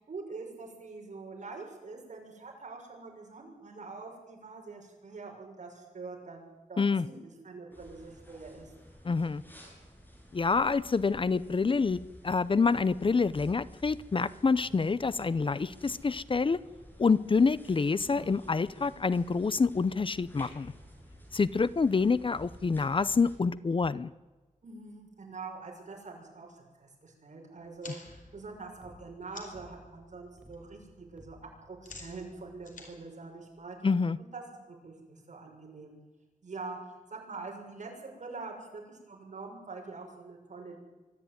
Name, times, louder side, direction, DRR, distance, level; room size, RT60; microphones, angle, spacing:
voice 1, 0.1-8.7 24.6-31.4 31.6-33.8 34.2-35.9 36.4-40.8, right 3 dB, 65° right, 1 dB, 6.6 m, -45 dB
sound 1, 7.7-23.4, equal, 15° left, 6.2 m, -52 dB
voice 2, 9.0-9.4 10.3-12.0 12.2-16.6 17.0-20.7 21.3-24.1 33.8-34.2, left 4 dB, 40° left, 17 dB, 0.6 m, -27 dB
sound 2, 20.6-25.7 28.1-32.8, equal, 10° right, 4.6 m, -59 dB
sound 3, 27.6-29.7 30.1-30.6 30.8-34.1, left 3 dB, 75° left, 4.7 m, -51 dB
24.5 x 13.5 x 9.5 m, 1.2 s
wide cardioid pair, 115°, 13 cm